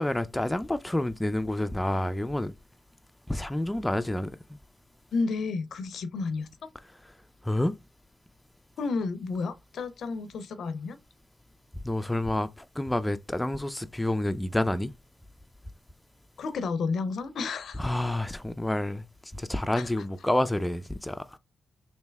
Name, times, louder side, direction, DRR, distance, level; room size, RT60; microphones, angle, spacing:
voice 1, 0.0-2.5 3.3-4.3 7.4-7.7 11.8-14.9 17.8-19.0 19.3-21.2, left 1 dB, 10° left, 0.3 m, -28 dB
voice 2, 5.1-6.5 8.8-11.0 16.4-17.9 19.8-19.9, left 4 dB, 75° left, 0.5 m, -31 dB
3.3 x 2.7 x 3.2 m
supercardioid pair, 55°, 0 cm